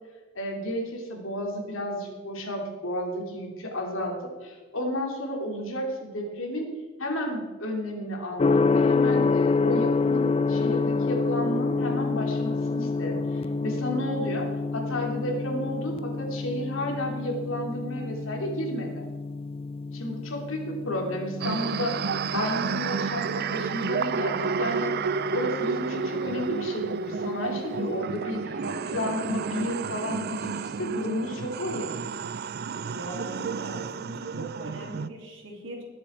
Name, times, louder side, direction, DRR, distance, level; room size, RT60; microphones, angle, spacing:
voice 1, 0.3-6.7 7.0-19.1 19.9-25.0 25.3-28.6 28.9-31.9, left 1 dB, 80° left, 1 dB, 3.0 m, -32 dB
Gong, 8.4-26.3, left 4 dB, 30° left, 0.4 m, -28 dB
sound 1, 21.4-35.1, right 5 dB, 50° right, 0.4 m, -31 dB
voice 2, 28.6-29.1 32.8-35.8, right 1 dB, 70° right, 0 dB, 3.4 m, -40 dB
21.0 x 7.8 x 4.5 m, 1.4 s
head